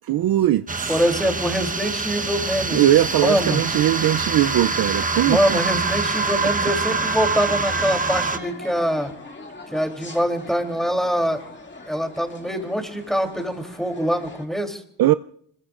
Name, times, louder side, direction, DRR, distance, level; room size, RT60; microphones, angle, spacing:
voice 1, 0.1-0.9 2.7-5.6 15.0-15.1, right 13 dB, 60° right, 0.5 m, -20 dB
sound 1, 0.7-8.4, right 4 dB, 20° right, 1.1 m, -25 dB
voice 2, 0.9-3.6 5.2-9.1 9.7-11.4 11.9-14.8, equal, ahead, 3.1 m, -24 dB
sound 2, 3.0-14.5, left 2 dB, 25° left, 2.4 m, -42 dB
25.5 x 22.0 x 2.5 m
cardioid pair, 80°, 41 cm